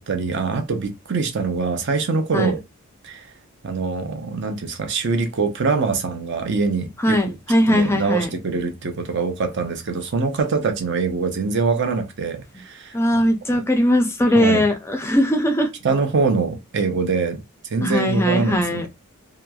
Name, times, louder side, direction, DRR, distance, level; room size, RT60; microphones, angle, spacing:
voice 1, 0.0-2.6 3.0-3.3 3.6-7.2 7.7-12.9 14.4-14.6 15.8-17.4 17.7-18.9, right 4 dB, 55° right, 0.5 m, -23 dB
voice 2, 7.0-8.3 12.9-15.7 17.8-18.9, equal, 10° left, 0.3 m, -19 dB
2.9 x 2.3 x 2.2 m
head